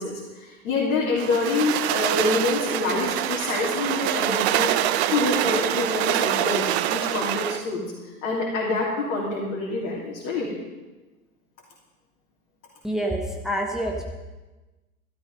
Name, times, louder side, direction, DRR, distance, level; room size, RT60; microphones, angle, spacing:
voice 1, 0.0-4.7 5.1-7.8 8.2-10.5, left 3 dB, 50° left, -4 dB, 3.3 m, -26 dB
sound 1, 1.2-7.7, right 12 dB, 45° right, 0.8 m, -25 dB
voice 2, 12.8-14.0, right 1 dB, ahead, 1 dB, 1.3 m, -27 dB
14.5 x 12.5 x 5.5 m, 1.2 s
figure-of-eight pair, 90°, 46 cm